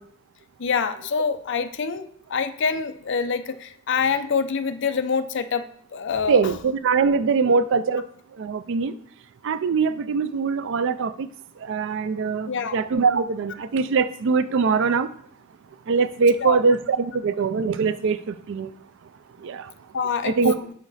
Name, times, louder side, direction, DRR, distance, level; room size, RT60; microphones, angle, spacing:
voice 1, 0.6-5.6 5.9-6.5 12.5-12.8 16.4-16.6 19.9-20.4 20.6-20.7, left 5 dB, 60° left, 9 dB, 0.5 m, -26 dB
voice 2, 6.3-8.0 8.4-8.9 9.4-11.3 11.7-15.1 15.9-18.7 19.4-19.7 20.2-20.6, right 5 dB, 60° right, 14 dB, 0.4 m, -22 dB
6.4 x 4.8 x 4.1 m, 0.66 s
head